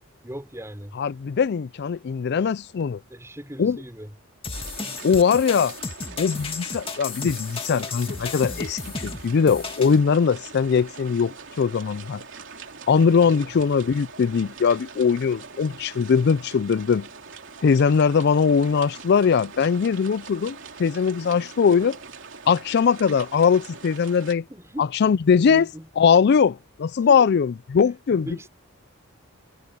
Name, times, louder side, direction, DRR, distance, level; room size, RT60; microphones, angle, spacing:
voice 1, 0.2-1.0 3.1-4.1 4.8-5.1 13.2-13.6 24.5-24.9 25.4-25.9 27.1-27.3 28.2-28.5, equal, 15° right, 5.5 m, -38 dB
voice 2, 0.9-3.0 3.6-3.8 5.0-5.7 6.2-12.2 12.9-17.1 17.6-22.0 22.5-24.4 24.8-25.7 26.0-28.3, left 6 dB, 50° left, 0.4 m, -21 dB
sound 1, 4.4-10.0, left 4 dB, 25° left, 2.2 m, -33 dB
sound 2, 4.5-24.4, right 5 dB, 60° right, 3.2 m, -43 dB
head